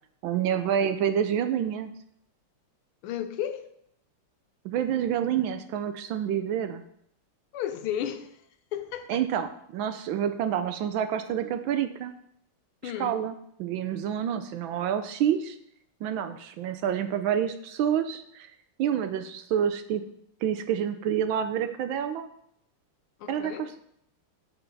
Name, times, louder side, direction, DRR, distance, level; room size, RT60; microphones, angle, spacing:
voice 1, 0.2-1.9 4.6-6.8 9.1-12.1 12.8-15.6 16.0-18.5 18.8-20.0 20.4-22.3 23.3-23.8, right 9 dB, 75° right, 9 dB, 1.2 m, -28 dB
voice 2, 3.0-3.6 7.5-8.3 8.7-9.2 12.8-13.2 23.2-23.7, left 10 dB, 80° left, 8 dB, 1.6 m, -33 dB
12.5 x 4.5 x 4.0 m, 0.72 s
omnidirectional pair, 2.4 m